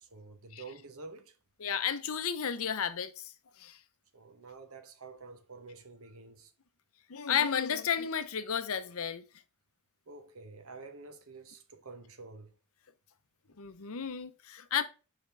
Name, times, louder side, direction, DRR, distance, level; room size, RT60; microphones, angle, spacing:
voice 1, 0.0-1.3 4.1-6.5 10.1-12.5, right 3 dB, 70° right, 1.0 m, -49 dB
voice 2, 1.6-3.3 3.6-3.8 7.1-9.2 13.6-14.8, left 7 dB, 65° left, 0.7 m, -32 dB
5.7 x 5.1 x 3.3 m
head